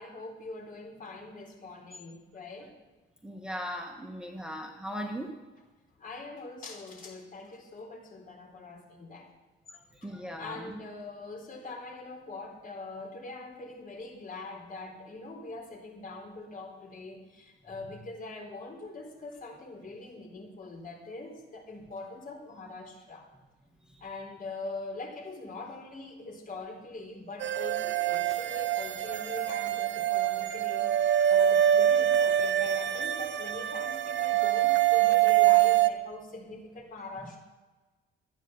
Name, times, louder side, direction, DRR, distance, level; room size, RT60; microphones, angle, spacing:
voice 1, 0.0-2.7 6.0-9.3 10.0-23.2 24.0-37.4, left 3 dB, 45° left, 1 dB, 4.1 m, -43 dB
voice 2, 3.2-5.3 10.0-10.8, equal, 5° right, 2 dB, 1.3 m, -38 dB
sound 1, 27.4-35.9, right 12 dB, 70° right, 0.8 m, -25 dB
13.0 x 9.1 x 6.9 m, 1.2 s
cardioid pair, 90°, 20 cm